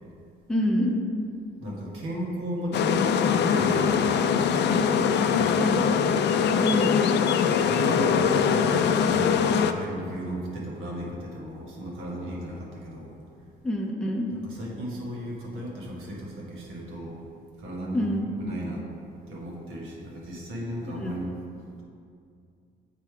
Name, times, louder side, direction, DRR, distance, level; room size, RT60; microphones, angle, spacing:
voice 1, 0.5-1.0 5.5-5.9 6.6-7.0 13.6-14.3 17.9-18.3 21.0-21.1, left 1 dB, 5° left, -1 dB, 0.6 m, -26 dB
voice 2, 1.6-4.7 5.2-5.8 7.5-13.2 14.3-17.2 17.6-18.8 19.3-21.3, equal, 90° right, -3 dB, 1.4 m, -35 dB
sound 1, 2.7-9.7, left 7 dB, 60° left, 0.4 m, -22 dB
7.5 x 3.3 x 4.8 m, 2.4 s
cardioid pair, 90°, 20 cm